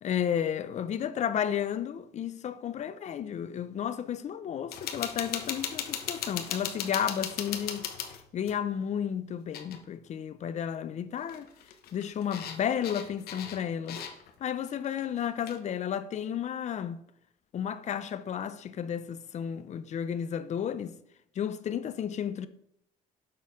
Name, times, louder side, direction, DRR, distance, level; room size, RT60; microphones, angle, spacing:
voice 1, 0.0-7.9 8.3-11.5 11.9-14.0 14.4-17.0 17.5-21.0 21.4-22.5, left 9 dB, 45° left, 0.5 m, -32 dB
sound 1, 4.7-8.6 9.5-9.8 10.1-10.2 11.2-14.4 14.8-15.6, left 8 dB, 65° left, 0.9 m, -37 dB
6.7 x 5.5 x 3.6 m
cardioid pair, 110°, 17 cm